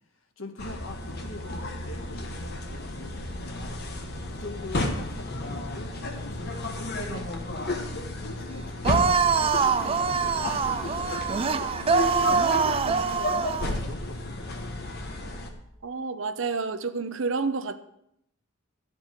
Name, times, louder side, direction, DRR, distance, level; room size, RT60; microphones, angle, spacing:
voice 1, 0.1-7.3 7.9-14.7, left 2 dB, 75° left, 6 dB, 1.3 m, -44 dB
sound 1, 0.6-15.5, left 2 dB, 50° left, 1.3 m, -33 dB
sound 2, 8.8-13.7, right 5 dB, 25° right, 0.4 m, -24 dB
voice 2, 15.8-17.8, right 4 dB, 65° right, 11 dB, 0.7 m, -29 dB
13.0 x 7.9 x 4.6 m, 0.77 s
head